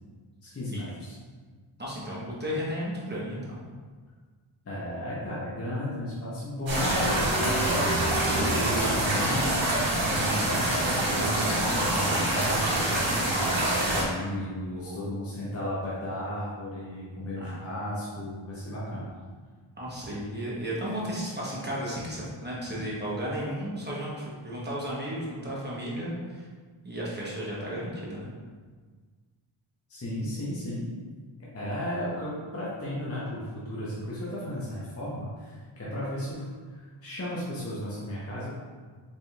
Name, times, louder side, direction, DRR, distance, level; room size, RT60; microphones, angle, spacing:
voice 1, 0.4-1.2 4.6-9.5 10.1-19.1 29.9-30.9 31.5-36.5 36.7-38.5, left 1 dB, 30° left, -7 dB, 0.7 m, -34 dB
voice 2, 1.8-3.6 14.7-15.2 17.4-17.6 19.8-26.4 26.8-28.3, equal, 20° right, -6 dB, 0.9 m, -34 dB
sound 1, 6.7-14.0, right 1 dB, 65° right, 1.0 m, -25 dB
4.2 x 3.4 x 2.3 m, 1.5 s
wide cardioid pair, 135°, 49 cm